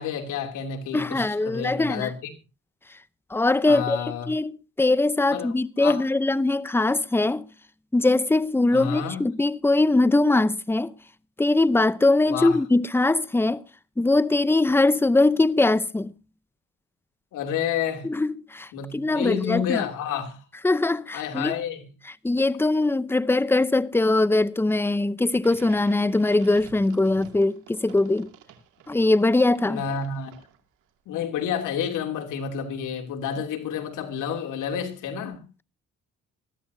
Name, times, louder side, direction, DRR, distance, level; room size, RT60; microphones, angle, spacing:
voice 1, 0.0-2.3 3.6-4.3 5.3-6.0 8.7-9.2 12.3-12.6 17.3-18.1 18.7-20.4 21.1-21.8 29.6-30.3 31.1-35.5, left 8 dB, 85° left, 3.0 m, -30 dB
voice 2, 0.9-2.1 3.3-4.0 4.3-4.5 4.8-7.5 7.9-10.9 11.4-13.6 14.0-16.1 18.0-19.8 20.6-21.5 22.2-28.3 28.9-29.8, left 2 dB, 10° left, 0.8 m, -21 dB
sound 1, 25.3-30.8, right 8 dB, 85° right, 2.5 m, -50 dB
21.0 x 14.0 x 2.8 m
cardioid pair, 90°, 30 cm